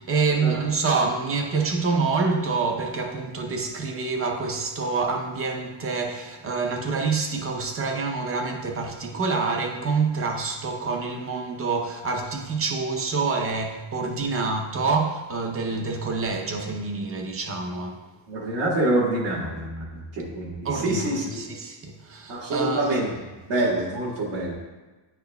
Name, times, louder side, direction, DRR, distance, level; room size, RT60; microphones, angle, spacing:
voice 1, 0.1-18.0 20.6-23.0, right 4 dB, 30° right, 0.7 m, -27 dB
voice 2, 18.3-21.4 22.3-23.1 23.5-24.5, right 1 dB, 70° right, 1.7 m, -26 dB
9.7 x 4.5 x 2.3 m
cardioid pair, 155°, 45 cm